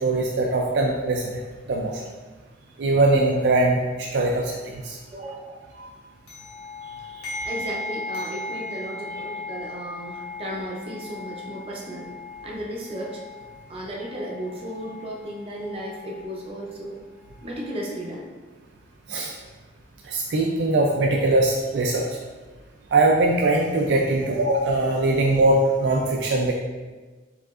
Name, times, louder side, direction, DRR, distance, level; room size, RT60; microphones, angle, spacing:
voice 1, 0.0-1.4 1.7-2.0 2.8-5.0 5.8-5.9 19.1-19.3 20.1-22.1 22.9-26.5, right 2 dB, 75° right, -1 dB, 0.4 m, -21 dB
voice 2, 5.1-5.7 7.4-12.1 12.4-13.2 13.7-17.0 17.4-18.3 24.2-24.4, equal, 35° right, -2 dB, 0.7 m, -34 dB
sound 1, 6.3-16.4 17.2-18.1, left 2 dB, 90° left, 1.4 m, -37 dB
4.7 x 3.6 x 2.4 m, 1.3 s
head